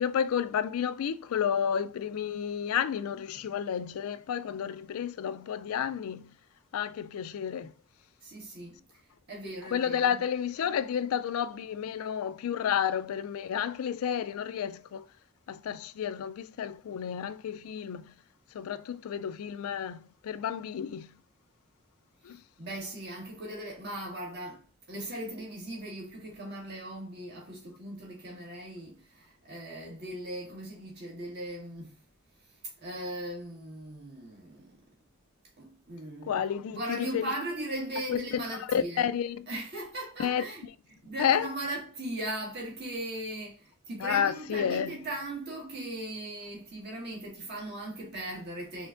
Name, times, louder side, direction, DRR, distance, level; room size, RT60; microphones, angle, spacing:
voice 1, 0.0-6.3 6.7-7.7 9.7-15.0 15.5-18.0 18.5-21.1 22.3-22.4 36.3-37.3 38.1-38.2 38.7-39.4 40.2-40.4 41.2-41.5 44.0-44.9, left 8 dB, 85° left, 0.3 m, -31 dB
voice 2, 8.2-8.8 9.3-10.2 22.6-24.6 24.9-32.0 32.8-34.7 35.6-36.4 36.7-39.1 39.5-48.9, right 1 dB, 50° right, 1.6 m, -38 dB
4.3 x 3.4 x 2.5 m
head